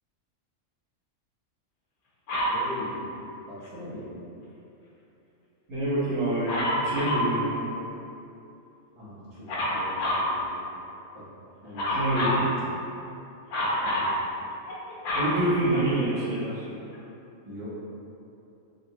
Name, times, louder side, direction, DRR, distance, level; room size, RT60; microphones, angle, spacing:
Dog, 2.3-2.6 6.5-7.3 9.5-10.3 11.7-12.5 13.5-14.1 14.7-16.2 16.9-17.0, left 1 dB, 90° left, 1.2 m, -27 dB
voice 1, 2.5-3.0 3.5-4.1 8.9-10.6 11.1-11.3 11.6-12.5 13.6-14.2 15.9-16.0 17.5-17.8, left 1 dB, 30° right, -10 dB, 0.8 m, -41 dB
voice 2, 5.7-7.5 11.9-12.4 15.1-16.7, right 1 dB, 70° right, -11 dB, 1.5 m, -26 dB
4.0 x 2.4 x 2.9 m, 2.8 s
omnidirectional pair, 1.4 m